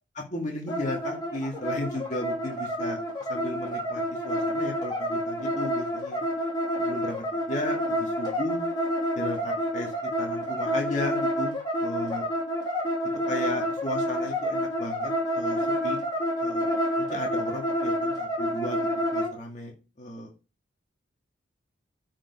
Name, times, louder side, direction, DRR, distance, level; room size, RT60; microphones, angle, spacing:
voice 1, 0.1-6.2 6.8-8.6 9.2-11.5 11.8-12.3 13.3-16.0 16.4-16.7 17.0-20.3, left 1 dB, 40° left, 0 dB, 1.9 m, -35 dB
sound 1, 0.7-19.3, equal, 20° left, 2.7 m, -28 dB
8.8 x 5.2 x 5.0 m, 0.31 s
head